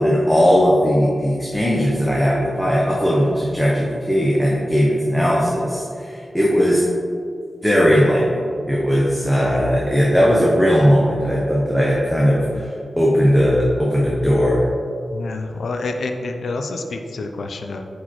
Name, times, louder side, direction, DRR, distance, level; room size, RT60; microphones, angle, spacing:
voice 1, 0.0-6.8 7.6-12.7 13.0-14.6, equal, ahead, -5 dB, 0.7 m, -18 dB
voice 2, 9.3-9.6 15.1-17.8, left 3 dB, 75° left, 5 dB, 0.4 m, -28 dB
8.1 x 4.7 x 3.0 m, 2.4 s
wide cardioid pair, 180°, 0 cm